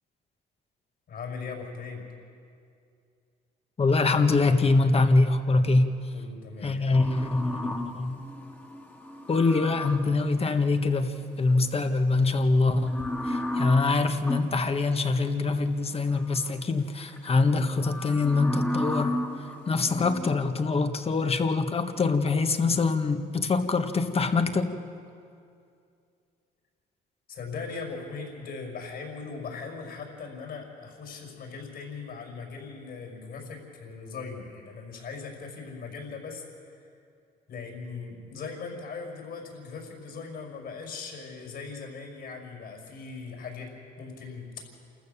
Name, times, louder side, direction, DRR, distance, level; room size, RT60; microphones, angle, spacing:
voice 1, 1.1-2.1 6.1-7.1 27.3-36.9 37.5-44.7, left 4 dB, 60° left, 1 dB, 5.9 m, -39 dB
voice 2, 3.8-6.0 6.6-8.2 9.3-19.2 19.7-24.7, left 3 dB, 30° left, 8 dB, 1.5 m, -24 dB
sound 1, 6.9-10.2 12.3-14.6 15.9-16.5 17.0-20.4, left 1 dB, 10° left, 2.0 m, -34 dB
28.0 x 14.5 x 7.1 m, 2.4 s
supercardioid pair, 85°, 18 cm